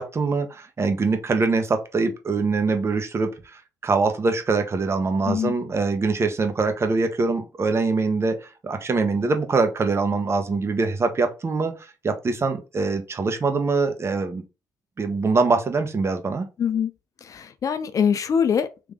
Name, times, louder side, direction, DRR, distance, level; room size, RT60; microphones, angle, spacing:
voice 1, 0.0-14.4 15.0-16.5, right 4 dB, 35° right, 1.0 m, -23 dB
voice 2, 5.3-5.6 16.6-16.9 17.3-18.9, left 7 dB, 50° left, 0.5 m, -23 dB
3.7 x 2.9 x 3.6 m
supercardioid pair, 65°, 7 cm